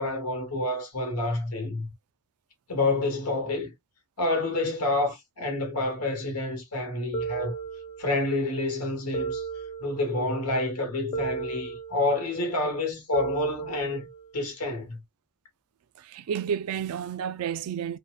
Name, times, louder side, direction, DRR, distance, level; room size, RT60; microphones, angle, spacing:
voice 1, 0.0-1.9 2.7-3.7 4.2-7.5 8.0-9.4 9.8-14.1 14.3-15.0, left 2 dB, 80° left, 1.1 m, -28 dB
sound 1, 7.1-8.3 9.1-10.3 11.1-12.3 13.1-14.3, right 5 dB, 20° left, 0.3 m, -35 dB
voice 2, 16.0-18.0, right 8 dB, 75° right, 0.3 m, -31 dB
2.7 x 2.1 x 2.3 m
head